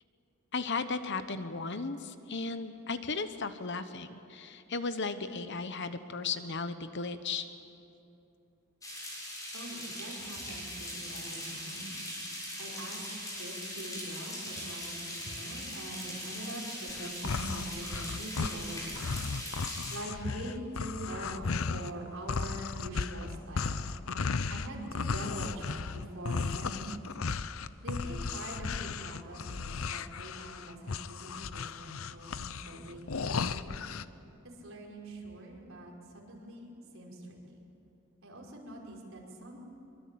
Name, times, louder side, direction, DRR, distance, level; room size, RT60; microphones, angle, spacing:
voice 1, 0.5-7.5, left 4 dB, 55° left, 10 dB, 1.0 m, -35 dB
sound 1, 8.8-20.0, equal, 15° left, 6.7 m, -40 dB
voice 2, 9.5-11.9 12.6-13.0 13.4-19.2 19.9-23.8 24.5-27.0 27.8-33.7 34.6-37.6 38.2-39.6, right 1 dB, 60° right, -2 dB, 5.4 m, -43 dB
sound 2, 16.9-21.9 22.3-34.0, left 4 dB, 70° left, 0.7 m, -35 dB
24.0 x 24.0 x 8.7 m, 2.9 s
head